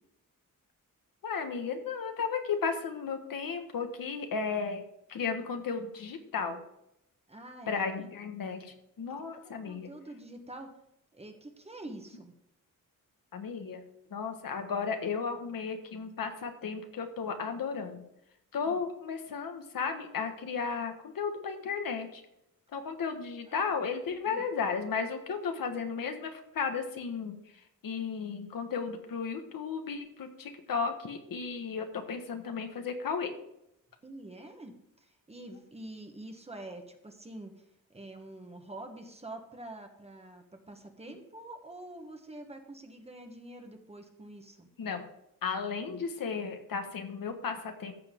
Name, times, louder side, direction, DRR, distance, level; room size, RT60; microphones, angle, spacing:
voice 1, 1.2-4.8 5.1-6.6 7.7-9.9 13.3-13.8 14.1-18.0 18.5-22.2 22.7-27.4 27.8-33.3 44.8-45.1 45.4-47.9, left 5 dB, 75° left, 5 dB, 1.5 m, -34 dB
voice 2, 7.3-8.1 9.3-10.7 11.1-12.3 18.6-18.8 23.5-23.7 24.3-24.4 34.0-37.5 37.9-44.7, right 1 dB, 20° right, 4 dB, 1.2 m, -46 dB
14.0 x 7.4 x 3.7 m, 0.80 s
wide cardioid pair, 165°, 34 cm